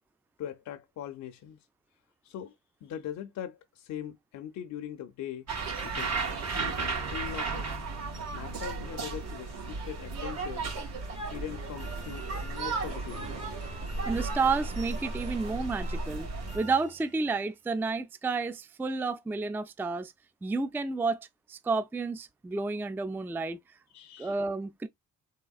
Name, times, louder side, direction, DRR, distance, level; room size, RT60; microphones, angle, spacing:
voice 1, 0.4-1.6 2.2-2.5 2.8-5.5 5.8-7.8 8.3-10.7 11.3-13.5 23.9-24.4, left 10 dB, 65° left, 0.6 m, -41 dB
sound 1, 5.5-16.6, right 3 dB, 60° right, 1.9 m, -34 dB
sound 2, 11.8-17.5, right 3 dB, 25° right, 0.9 m, -48 dB
voice 2, 14.1-16.3 16.5-20.1 20.4-23.6 24.2-24.9, right 4 dB, 5° right, 0.3 m, -31 dB
3.6 x 3.2 x 2.3 m
cardioid pair, 90°, 30 cm